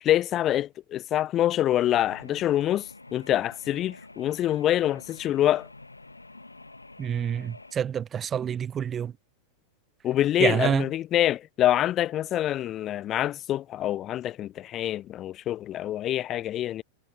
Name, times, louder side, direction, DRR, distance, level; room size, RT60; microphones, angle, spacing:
voice 1, 0.0-5.7 10.0-16.8, left 12 dB, 30° left, 0.9 m, -26 dB
sound 1, 1.8-7.7, left 2 dB, 85° left, 2.0 m, -48 dB
voice 2, 7.0-9.1 10.4-10.9, right 8 dB, 25° right, 0.7 m, -27 dB
figure-of-eight pair, 90°, 0 cm